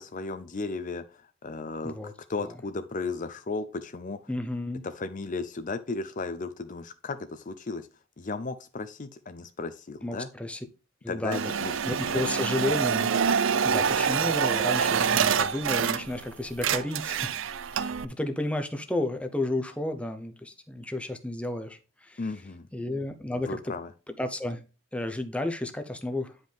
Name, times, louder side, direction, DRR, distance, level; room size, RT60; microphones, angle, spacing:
voice 1, 0.0-2.0 2.3-4.2 4.8-7.9 8.2-10.3 11.1-12.2 22.2-22.7 23.3-23.9, left 3 dB, 35° left, 0.5 m, -35 dB
voice 2, 4.3-4.8 10.0-10.7 11.0-11.5 11.8-17.4 17.7-22.4 22.7-23.7 24.1-24.6 24.9-26.4, left 1 dB, 5° left, 0.7 m, -32 dB
sound 1, 11.3-16.3 16.5-18.1, right 7 dB, 60° right, 0.5 m, -26 dB
9.6 x 5.3 x 3.4 m
head